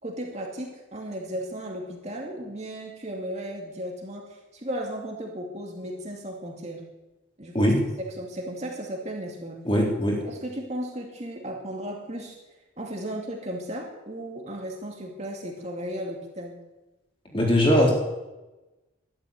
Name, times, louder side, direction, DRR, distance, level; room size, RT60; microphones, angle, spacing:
voice 1, 0.0-6.8 7.4-9.6 10.2-12.4 12.8-16.6, right 1 dB, 35° right, 0 dB, 2.4 m, -35 dB
voice 2, 9.7-10.2 17.3-17.9, equal, 25° left, -1 dB, 3.7 m, -20 dB
13.5 x 12.5 x 8.4 m, 1.1 s
head